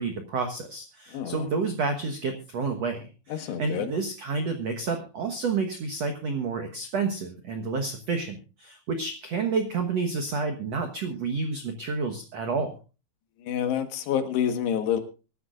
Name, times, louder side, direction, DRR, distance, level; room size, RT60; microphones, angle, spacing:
voice 1, 0.0-12.8, right 4 dB, 70° right, 5 dB, 1.6 m, -30 dB
voice 2, 1.1-1.5 3.4-3.9 13.4-15.0, left 9 dB, 75° left, 7 dB, 3.6 m, -27 dB
23.5 x 12.0 x 2.5 m, 0.33 s
omnidirectional pair, 4.9 m